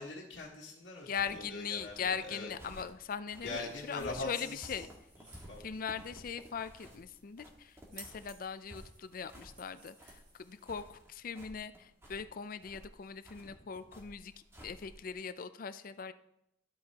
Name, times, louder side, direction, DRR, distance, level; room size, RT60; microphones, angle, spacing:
voice 1, 0.0-2.5 3.4-4.7 5.5-5.6, left 3 dB, 85° left, -6 dB, 1.6 m, -42 dB
sound 1, 1.0-15.1, equal, 15° right, 1.6 m, -54 dB
voice 2, 1.1-4.9 5.6-14.3 14.6-16.1, left 6 dB, 50° left, 13 dB, 0.5 m, -40 dB
sound 2, 3.5-11.0, right 2 dB, 45° right, 3.2 m, -59 dB
12.0 x 7.9 x 2.9 m, 0.80 s
head